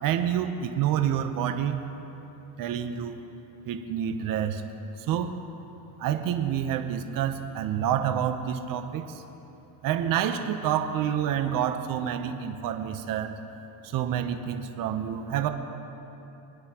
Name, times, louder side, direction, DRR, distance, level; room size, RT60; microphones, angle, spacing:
voice 1, 0.0-1.9 2.6-3.2 3.7-4.6 5.0-5.3 6.0-9.2 9.8-13.4 13.8-15.5, right 9 dB, 55° right, 7 dB, 0.9 m, -28 dB
21.0 x 9.7 x 3.0 m, 2.9 s
cardioid pair, 120°, 40 cm